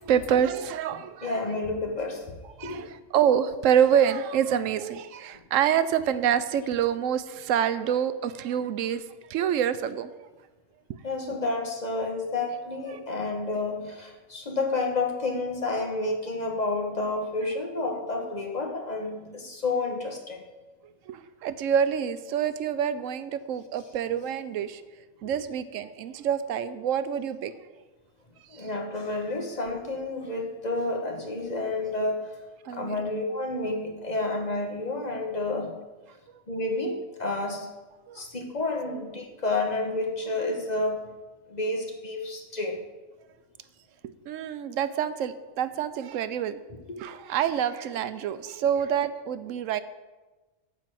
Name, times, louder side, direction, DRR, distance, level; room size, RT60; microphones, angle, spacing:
voice 1, 0.0-1.4 2.6-10.3 11.3-11.4 12.9-13.0 21.1-24.8 25.2-27.5 28.6-28.7 32.6-33.1 38.1-38.2 38.9-39.1 44.0-46.6 47.0-49.8, right 9 dB, 85° right, 13 dB, 1.0 m, -27 dB
voice 2, 1.2-2.2 2.6-2.8 11.0-20.4 28.5-32.4 32.7-35.8 36.5-37.7 38.1-41.0 41.5-42.8 46.9-47.0, left 2 dB, 35° left, 1 dB, 1.5 m, -30 dB
11.0 x 4.5 x 7.5 m, 1.2 s
omnidirectional pair, 1.3 m